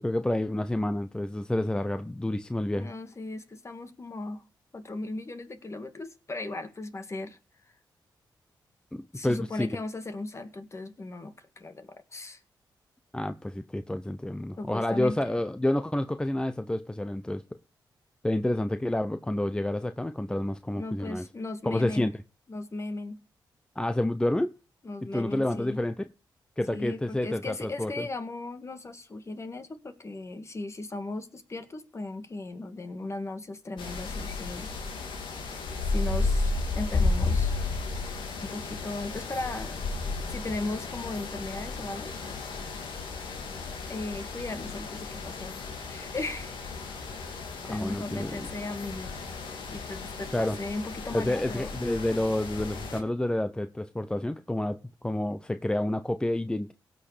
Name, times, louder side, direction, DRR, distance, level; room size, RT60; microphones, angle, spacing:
voice 1, 0.0-2.9 8.9-9.7 13.1-17.4 18.2-21.2 21.6-22.1 23.8-24.5 25.1-26.0 26.6-28.1 47.7-48.5 50.3-50.6 51.1-56.7, left 1 dB, 10° left, 0.8 m, -29 dB
voice 2, 2.8-4.4 4.7-7.4 9.1-12.4 14.6-15.2 20.8-22.1 22.5-23.2 24.8-25.8 26.7-34.7 35.9-37.5 38.4-39.8 40.3-42.5 43.9-46.5 47.7-49.1 49.7-51.7, left 2 dB, 35° left, 2.0 m, -37 dB
sound 1, 33.8-53.0, left 3 dB, 90° left, 2.7 m, -33 dB
17.0 x 6.7 x 5.1 m
cardioid pair, 70°, 8 cm